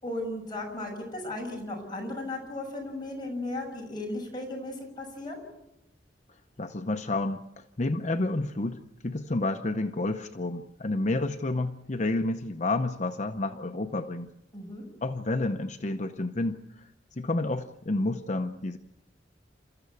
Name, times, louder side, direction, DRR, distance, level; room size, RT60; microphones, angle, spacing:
voice 1, 0.0-5.4 14.5-14.9, left 2 dB, 25° left, 0 dB, 6.7 m, -36 dB
voice 2, 6.6-8.8 9.0-14.3 15.0-16.9 17.2-18.8, left 2 dB, 40° left, 7 dB, 0.8 m, -30 dB
29.5 x 14.0 x 8.3 m, 0.90 s
head